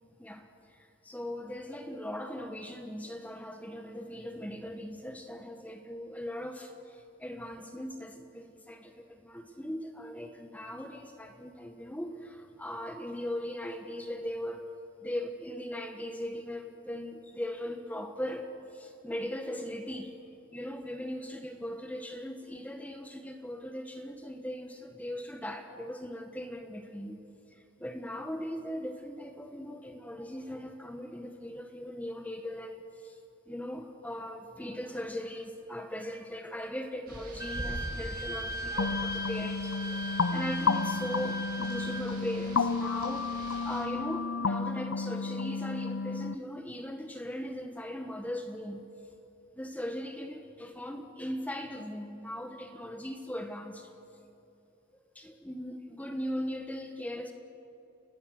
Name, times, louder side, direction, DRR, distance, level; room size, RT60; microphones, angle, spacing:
voice 1, 0.2-14.6 15.0-20.2 20.5-27.2 27.5-33.2 33.5-48.8 49.5-53.9 55.1-57.3, equal, 10° left, 5 dB, 1.2 m, -39 dB
Rain, 37.1-43.8, right 1 dB, 50° right, 7.0 m, -44 dB
Wind instrument woodwind instrument, 37.4-42.1, equal, 15° right, 1.0 m, -38 dB
sound 1, 38.8-46.3, left 4 dB, 85° left, 0.6 m, -32 dB
29.5 x 20.0 x 6.4 m, 3.0 s
head